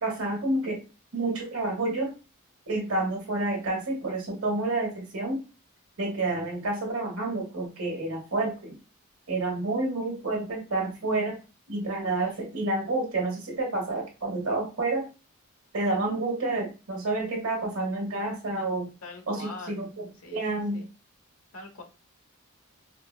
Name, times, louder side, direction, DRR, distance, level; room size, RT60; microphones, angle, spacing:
voice 1, 0.0-0.8 1.1-2.1 2.7-5.4 6.0-8.8 9.3-11.4 11.7-15.1 15.7-18.9 19.3-20.8, right 2 dB, 75° right, 1 dB, 1.3 m, -29 dB
voice 2, 19.0-19.8 20.2-20.4 20.7-20.9 21.5-21.8, left 3 dB, 80° left, 2 dB, 1.1 m, -42 dB
4.2 x 2.1 x 2.4 m, 0.30 s
head